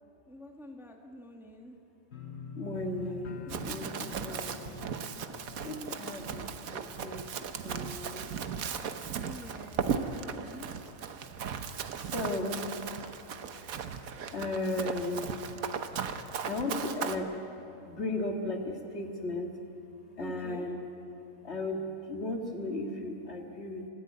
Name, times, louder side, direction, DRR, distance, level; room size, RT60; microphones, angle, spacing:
voice 1, 0.3-1.8 3.5-4.4 9.2-10.7 20.2-20.8, equal, ahead, 2 dB, 1.4 m, -48 dB
sound 1, 2.1-9.0 9.3-9.8 10.2-10.3, left 4 dB, 70° left, 1.5 m, -48 dB
voice 2, 2.5-4.9 5.6-6.5 6.7-8.3 12.1-12.7 14.3-15.4 16.4-17.4 17.9-19.5 20.2-20.8 21.4-23.9, left 2 dB, 50° left, 2 dB, 2.2 m, -35 dB
Run, 3.5-17.2, right 7 dB, 85° right, 1.4 m, -37 dB
24.5 x 14.5 x 9.5 m, 2.8 s
omnidirectional pair, 1.4 m